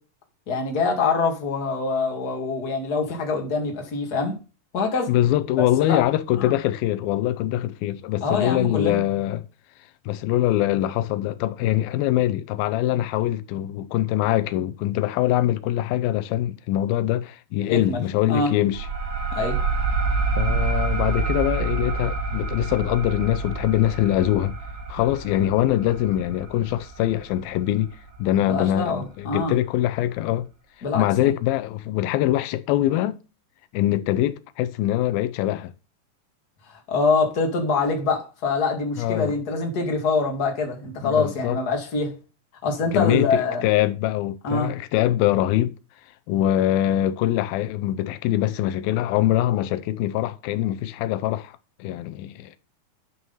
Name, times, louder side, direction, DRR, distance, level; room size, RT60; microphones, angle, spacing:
voice 1, 0.5-4.3 4.7-5.1 5.8-6.0 6.4-6.5 8.2-9.0 17.7-18.0 18.3-18.5 19.3-19.6 28.5-29.5 30.8-31.3 36.9-42.1 42.6-43.6 44.4-44.7, left 4 dB, 30° left, 2.3 m, -24 dB
voice 2, 5.1-9.5 10.1-18.9 20.4-24.6 24.9-27.9 28.2-30.5 30.9-33.2 33.7-35.7 39.0-39.4 41.0-41.6 42.9-45.8 46.3-51.5 51.8-52.6, left 13 dB, 90° left, 2.5 m, -23 dB
sound 1, 18.7-28.0, right 4 dB, 80° right, 0.8 m, -27 dB
11.5 x 6.0 x 5.5 m
omnidirectional pair, 4.1 m